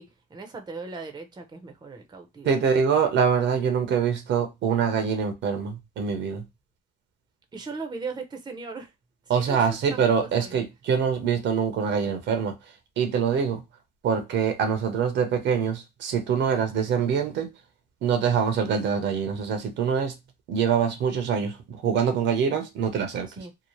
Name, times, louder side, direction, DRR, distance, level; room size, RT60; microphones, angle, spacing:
voice 1, 0.0-2.6 7.5-8.9 9.3-10.6 23.3-23.5, right 4 dB, 20° right, 0.6 m, -38 dB
voice 2, 2.4-6.4 9.3-12.5 13.0-13.6 14.0-17.5 18.0-20.1 20.5-23.4, right 7 dB, 70° right, 0.7 m, -24 dB
2.8 x 2.1 x 3.0 m
cardioid pair, 80°, 19 cm